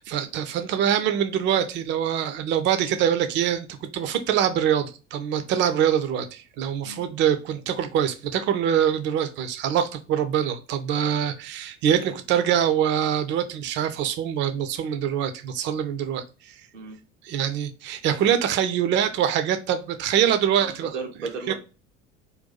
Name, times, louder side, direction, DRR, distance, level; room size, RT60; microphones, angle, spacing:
voice 1, 0.0-16.2 17.2-20.9 21.5-21.6, right 9 dB, 30° right, 0.4 m, -24 dB
voice 2, 20.6-21.5, right 4 dB, 90° right, 0.7 m, -35 dB
2.6 x 2.2 x 3.9 m
figure-of-eight pair, 65°, 36 cm